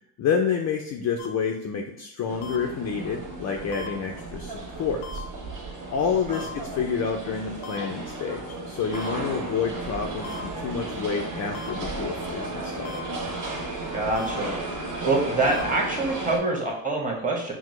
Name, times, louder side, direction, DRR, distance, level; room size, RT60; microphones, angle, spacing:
voice 1, 0.2-5.3 5.9-13.0, left 6 dB, 35° left, 2 dB, 0.4 m, -29 dB
sound 1, 1.2-1.3 2.4-2.6 3.7-3.9 5.0-5.2 6.3-6.5 7.6-7.8 8.9-9.1 10.2-10.4 11.5-11.7 12.8-13.0 14.2-14.3 15.5-15.6, left 2 dB, 85° left, 0.6 m, -39 dB
sound 2, 2.3-16.4, right 2 dB, 40° right, 1.2 m, -34 dB
voice 2, 13.9-17.5, right 2 dB, 15° right, -2 dB, 1.2 m, -26 dB
5.9 x 2.1 x 3.1 m, 0.81 s
supercardioid pair, 105°, 49 cm